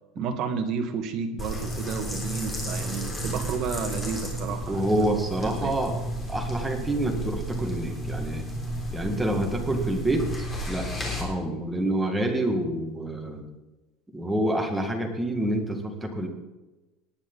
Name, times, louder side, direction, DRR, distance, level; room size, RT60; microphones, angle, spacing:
voice 1, 0.1-5.7, right 6 dB, 45° right, 6 dB, 1.6 m, -32 dB
sound 1, 1.4-11.2, equal, 15° left, 3.6 m, -32 dB
voice 2, 4.7-6.0 6.3-8.4 8.9-13.4 14.1-16.3, right 1 dB, 5° right, 2 dB, 1.9 m, -27 dB
19.0 x 9.4 x 4.0 m, 1.1 s
cardioid pair, 160°, 0 cm